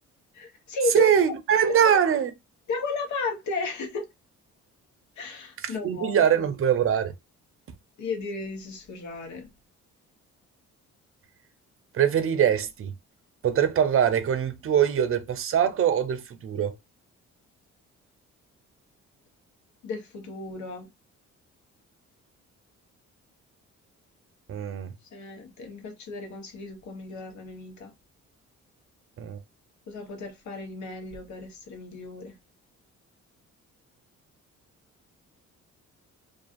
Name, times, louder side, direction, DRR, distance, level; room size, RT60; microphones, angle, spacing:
voice 1, 0.3-1.1 1.7-2.0 2.7-4.0 5.2-6.3 8.0-9.5 19.8-20.9 25.1-27.9 29.9-32.3, left 3 dB, 70° left, 1.1 m, -34 dB
voice 2, 0.9-2.3 5.6-7.1 11.9-12.9 13.4-16.7 24.5-24.9 29.2-29.4, right 8 dB, 45° right, 0.6 m, -23 dB
2.4 x 2.4 x 2.5 m
cardioid pair, 90°, 30 cm